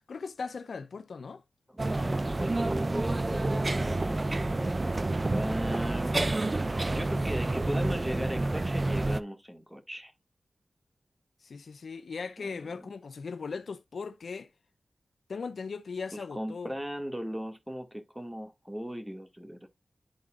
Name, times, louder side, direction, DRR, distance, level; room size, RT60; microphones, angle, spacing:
voice 1, 0.1-1.4 11.4-14.5 15.3-16.7, left 5 dB, 80° left, 0.6 m, -38 dB
voice 2, 1.7-6.2 6.9-10.1 12.4-12.9 16.3-19.7, equal, 5° right, 1.9 m, -38 dB
sound 1, 1.8-9.2, right 2 dB, 35° right, 0.5 m, -29 dB
11.5 x 4.0 x 2.4 m
wide cardioid pair, 60°, 0 cm